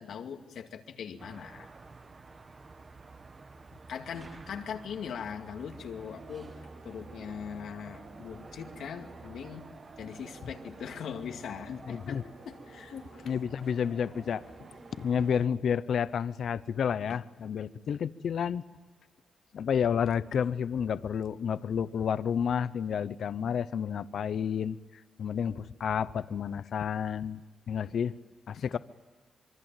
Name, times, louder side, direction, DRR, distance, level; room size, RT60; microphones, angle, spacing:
voice 1, 0.0-1.7 3.9-6.5 6.8-9.7 10.0-13.3, left 7 dB, 85° left, 4 dB, 2.3 m, -41 dB
sound 1, 1.2-15.5, right 3 dB, 30° right, 1.3 m, -51 dB
sound 2, 6.0-15.6, right 3 dB, 55° right, 8.0 m, -52 dB
voice 2, 11.7-12.2 13.2-14.4 15.0-18.6 19.5-24.8 25.2-27.4 27.7-28.1 28.5-28.8, left 7 dB, 65° left, 15 dB, 0.8 m, -30 dB
25.5 x 24.0 x 9.1 m, 1.3 s
wide cardioid pair, 135°, 0 cm